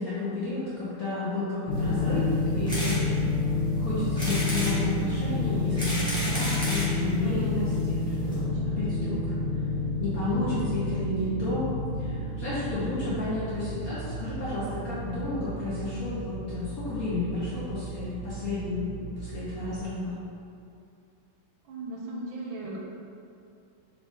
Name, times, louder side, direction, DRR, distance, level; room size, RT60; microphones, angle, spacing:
voice 1, 0.0-3.0 3.8-8.5 8.8-9.3 10.0-11.7 12.0-20.2, left 2 dB, 60° left, -9 dB, 0.9 m, -32 dB
sound 1, 1.7-19.8, left 2 dB, 80° left, 1.6 m, -30 dB
sound 2, 2.7-3.0 3.5-3.6 4.2-4.8 5.5-6.9 7.7-7.8 8.0-8.1 8.3-8.4, equal, 5° left, 0.7 m, -32 dB
voice 2, 7.2-7.7 8.3-8.8 21.6-22.8, right 2 dB, 75° right, -2 dB, 1.3 m, -38 dB
3.7 x 3.7 x 3.7 m, 2.5 s
omnidirectional pair, 2.3 m